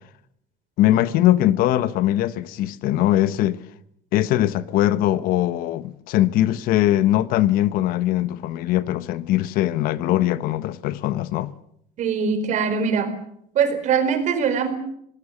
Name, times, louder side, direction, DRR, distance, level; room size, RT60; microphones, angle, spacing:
voice 1, 0.8-3.6 4.1-11.5, left 13 dB, 70° left, 1.2 m, -21 dB
voice 2, 12.0-13.1 13.5-14.8, right 6 dB, 50° right, 4.4 m, -22 dB
26.0 x 19.0 x 7.3 m
cardioid pair, 130°, 16 cm